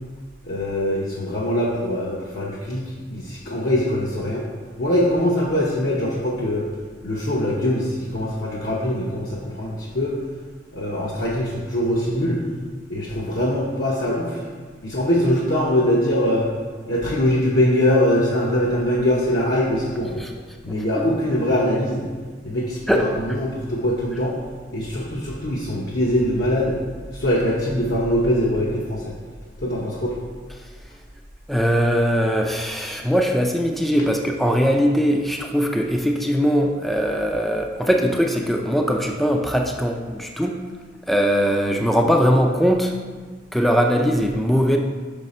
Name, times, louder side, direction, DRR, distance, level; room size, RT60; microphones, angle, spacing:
voice 1, 0.5-4.4 4.8-6.7 7.0-10.1 10.7-12.4 12.9-14.4 14.8-16.5 16.9-20.2 20.6-22.1 22.4-24.3 24.7-26.8 27.1-29.1 29.6-30.1, left 1 dB, 60° left, -5 dB, 0.8 m, -22 dB
voice 2, 31.5-40.6 41.1-42.9 43.5-44.8, equal, ahead, 2 dB, 0.3 m, -20 dB
5.6 x 5.4 x 4.2 m, 1.5 s
head